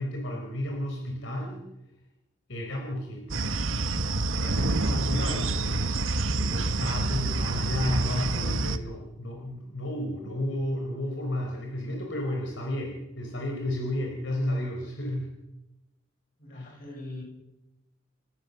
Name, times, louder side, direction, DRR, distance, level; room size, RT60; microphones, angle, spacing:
voice 1, 0.0-1.6 2.5-3.9 4.3-5.8 6.4-15.3 16.5-16.8, left 1 dB, 65° left, 1 dB, 4.3 m, -32 dB
sound 1, 3.3-8.8, right 2 dB, 75° right, 1.3 m, -27 dB
voice 2, 16.4-17.2, left 2 dB, 45° left, 1 dB, 7.2 m, -41 dB
30.0 x 15.0 x 7.0 m, 0.95 s
head